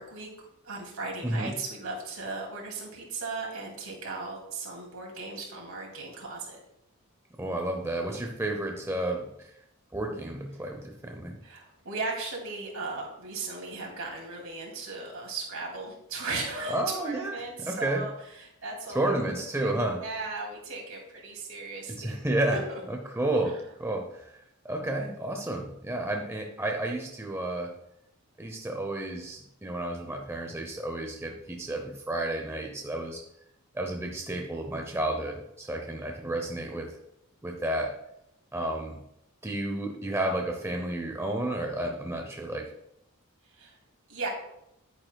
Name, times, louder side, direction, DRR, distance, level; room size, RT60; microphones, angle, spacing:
voice 1, 0.0-6.6 11.4-22.2 22.4-22.8 23.4-23.6 43.5-43.8 44.1-44.3, right 3 dB, 70° right, -1 dB, 2.5 m, -37 dB
voice 2, 1.2-1.5 7.4-9.5 9.9-11.4 16.7-18.1 18.9-20.0 21.9-22.6 22.9-27.8 28.4-33.2 33.7-37.0 37.4-38.0 38.5-39.0 39.4-42.7, right 1 dB, 10° right, 2 dB, 0.6 m, -31 dB
10.5 x 8.9 x 2.3 m, 0.81 s
head